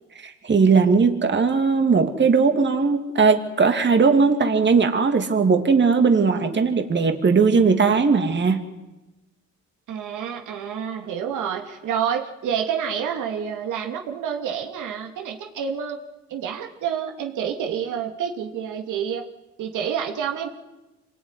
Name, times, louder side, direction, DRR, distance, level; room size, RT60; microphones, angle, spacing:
voice 1, 0.2-8.6, right 5 dB, 35° right, 5 dB, 2.7 m, -18 dB
voice 2, 9.9-16.0 16.3-19.2 19.6-20.5, right 8 dB, 85° right, 3 dB, 2.8 m, -28 dB
26.0 x 20.0 x 9.9 m, 1.0 s
cardioid pair, 90°, 30 cm